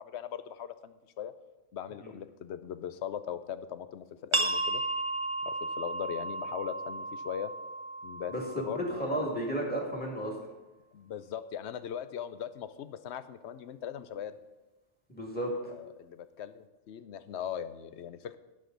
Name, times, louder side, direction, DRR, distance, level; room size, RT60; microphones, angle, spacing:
voice 1, 0.0-1.3 1.7-4.8 5.4-7.5 8.0-9.3 10.9-14.3 15.7-18.4, left 9 dB, 70° left, 12 dB, 0.9 m, -39 dB
sound 1, 4.3-9.7, right 2 dB, 30° right, 0.6 m, -34 dB
voice 2, 8.3-10.3 15.1-15.7, right 1 dB, 10° left, -2 dB, 2.1 m, -33 dB
18.5 x 6.5 x 3.9 m, 1.1 s
omnidirectional pair, 1.2 m